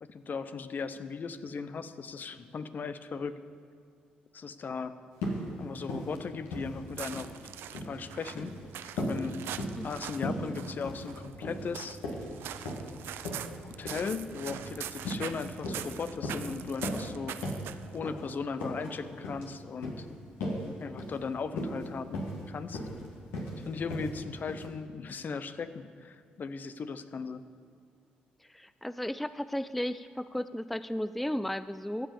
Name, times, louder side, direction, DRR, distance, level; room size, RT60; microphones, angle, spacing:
voice 1, 0.0-3.4 4.3-4.9 5.6-7.3 7.7-8.6 9.0-9.3 9.8-12.0 13.6-17.4 17.9-20.1 20.8-22.8 23.7-27.4, left 5 dB, 50° left, 12 dB, 0.6 m, -37 dB
sound 1, 5.2-5.5 5.8-6.2 6.5-7.3 7.6-8.0 8.3-8.6 9.0-9.2 9.6-9.9 10.2-10.5 10.8-11.1 11.4-11.7 12.0-12.9 13.3-13.5 13.9-14.1 14.5-14.7 15.0-15.3 15.6-15.9 16.2-16.5 16.8-17.1 17.4-17.7 18.0-18.2 18.6-18.9 19.2-19.5 19.8-20.0 20.4-20.7 21.0-21.2 21.5-21.9 22.1-22.4 22.7-23.0 23.3-23.5 23.9-24.2 24.5-24.7, left 1 dB, 80° left, 1.9 m, -36 dB
sound 2, 6.9-18.0, right 10 dB, 70° right, 0.4 m, -43 dB
voice 2, 28.4-32.1, equal, 5° left, 13 dB, 0.3 m, -34 dB
14.0 x 5.3 x 7.1 m, 2.2 s
hypercardioid pair, 50°, 4 cm